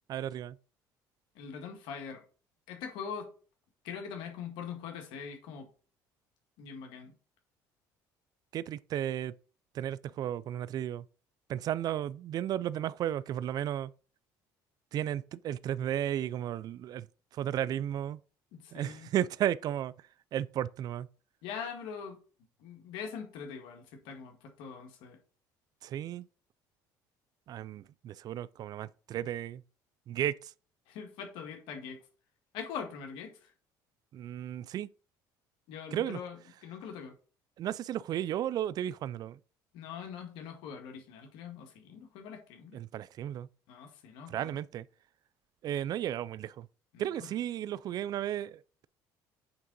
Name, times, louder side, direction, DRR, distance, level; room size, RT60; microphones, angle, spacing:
voice 1, 0.1-0.6 8.5-9.3 9.7-11.0 11.5-13.9 14.9-17.1 17.4-18.2 18.7-19.9 20.3-21.1 25.8-26.3 27.5-29.6 30.1-30.5 34.1-34.9 35.9-36.2 37.6-39.4 42.7-43.5 44.3-44.9 45.6-46.7 47.0-48.9, right 11 dB, 55° right, 0.4 m, -34 dB
voice 2, 1.4-2.2 2.7-3.3 3.8-5.7 6.6-7.1 18.5-19.1 21.4-22.2 22.6-25.2 30.9-32.0 32.5-33.4 35.7-37.1 39.7-42.8 43.7-44.6 46.9-47.3, left 7 dB, 85° left, 1.8 m, -42 dB
8.8 x 3.7 x 5.3 m
cardioid pair, 100°, 8 cm